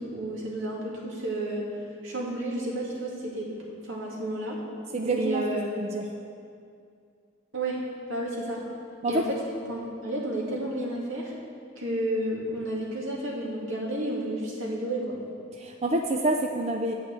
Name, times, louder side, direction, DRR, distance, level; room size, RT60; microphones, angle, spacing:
voice 1, 0.0-1.6 2.0-3.5 3.8-4.6 5.0-5.9 7.5-7.8 8.1-8.6 9.1-9.4 9.7-11.3 11.8-15.2, right 1 dB, 80° right, -4 dB, 2.4 m, -31 dB
voice 2, 4.9-6.0 9.0-9.2 15.6-16.9, right 2 dB, 30° right, 2 dB, 0.5 m, -27 dB
9.4 x 5.7 x 8.2 m, 2.3 s
head